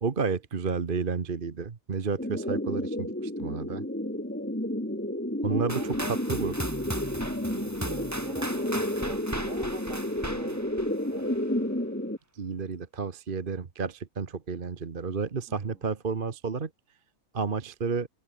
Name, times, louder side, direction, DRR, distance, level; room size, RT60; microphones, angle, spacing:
voice 1, 0.0-3.8 5.4-5.8 6.1-6.5 12.3-16.7 17.3-18.1, right 5 dB, 40° right, 1.3 m, -31 dB
sound 1, 2.2-12.2, left 1 dB, 5° left, 2.7 m, -31 dB
voice 2, 5.5-6.2 7.4-11.3 15.5-15.8, right 3 dB, 55° right, 3.2 m, -44 dB
sound 2, 5.7-11.5, right 1 dB, 10° right, 3.3 m, -37 dB
omnidirectional pair, 1.6 m